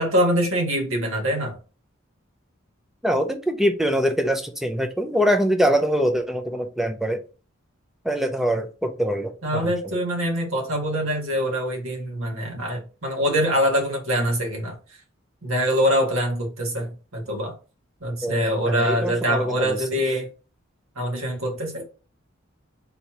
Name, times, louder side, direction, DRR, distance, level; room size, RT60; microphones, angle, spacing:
voice 1, 0.0-1.6 9.4-14.8 15.4-17.5 18.0-20.3 20.9-21.9, equal, 85° right, 1.5 m, -24 dB
voice 2, 3.0-7.2 8.0-9.9 18.2-19.8, equal, ahead, 0.4 m, -24 dB
4.0 x 2.9 x 3.6 m
head